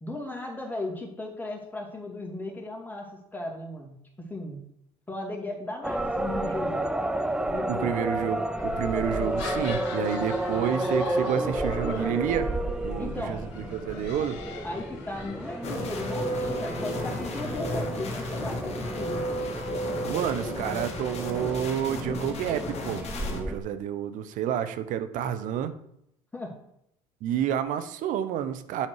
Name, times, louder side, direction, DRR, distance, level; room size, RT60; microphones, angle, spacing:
voice 1, 0.0-4.6 5.1-6.9 7.5-7.9 13.0-13.4 14.6-19.4 26.3-26.6, left 2 dB, 10° left, 0 dB, 2.4 m, -36 dB
sound 1, 5.8-23.6, right 1 dB, 5° right, 0.6 m, -32 dB
voice 2, 7.7-12.5 12.8-14.4 20.1-25.7 27.2-28.9, right 9 dB, 65° right, 11 dB, 0.8 m, -29 dB
sound 2, 8.6-17.0, left 5 dB, 80° left, 1.6 m, -42 dB
sound 3, 15.6-23.4, left 1 dB, 45° left, 1.6 m, -34 dB
8.7 x 4.4 x 4.7 m, 0.75 s
supercardioid pair, 80°, 15 cm